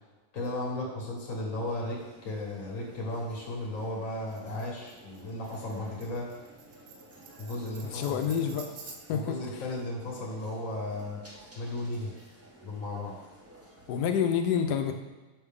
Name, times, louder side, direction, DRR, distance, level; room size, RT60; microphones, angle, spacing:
voice 1, 0.3-6.3 7.4-8.6 9.1-11.2 11.6-12.1 12.6-13.2, left 1 dB, 55° left, -4 dB, 1.8 m, -35 dB
sound 1, 1.5-14.1, right 1 dB, 15° right, 0.5 m, -54 dB
Tambourine, 4.3-9.3, right 5 dB, 80° right, 1.3 m, -50 dB
voice 2, 7.8-9.4 13.9-14.9, left 8 dB, 80° left, 6 dB, 1.2 m, -28 dB
5.8 x 5.4 x 3.6 m, 1.2 s
omnidirectional pair, 1.8 m